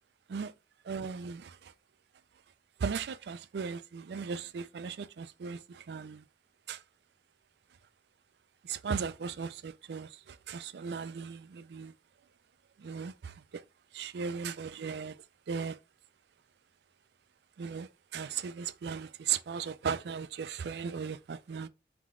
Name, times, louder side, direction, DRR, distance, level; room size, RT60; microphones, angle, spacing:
voice 1, 0.8-1.7 2.8-6.2 6.7-6.8 8.6-11.9 12.8-13.6 13.9-15.8 17.6-21.7, right 6 dB, 75° right, 0.4 m, -37 dB
3.7 x 3.4 x 3.6 m
head